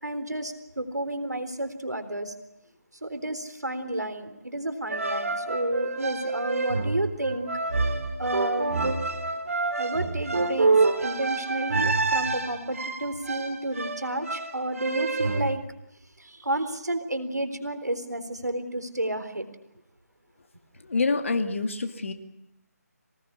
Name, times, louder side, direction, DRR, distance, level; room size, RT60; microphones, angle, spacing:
voice 1, 0.0-2.3 3.0-7.5 8.2-8.8 9.8-15.6 16.2-19.5, right 1 dB, 85° right, 9 dB, 3.8 m, -31 dB
sound 1, 4.9-15.6, right 3 dB, 55° right, 3.0 m, -27 dB
voice 2, 20.8-22.1, left 3 dB, 50° left, 7 dB, 2.5 m, -26 dB
24.0 x 19.0 x 10.0 m, 0.83 s
figure-of-eight pair, 155°, 9 cm